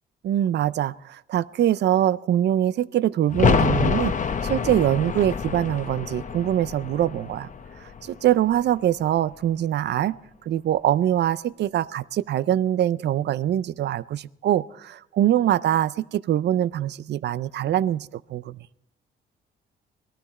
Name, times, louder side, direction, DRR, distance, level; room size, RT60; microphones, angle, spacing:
voice 1, 0.2-4.1 4.4-7.5 8.0-10.2 10.5-18.6, right 11 dB, 60° right, 19 dB, 0.5 m, -23 dB
sound 1, 3.3-8.9 9.2-9.3, left 6 dB, 40° left, 0.8 m, -26 dB
18.5 x 13.0 x 4.3 m, 0.83 s
cardioid pair, 90°, 20 cm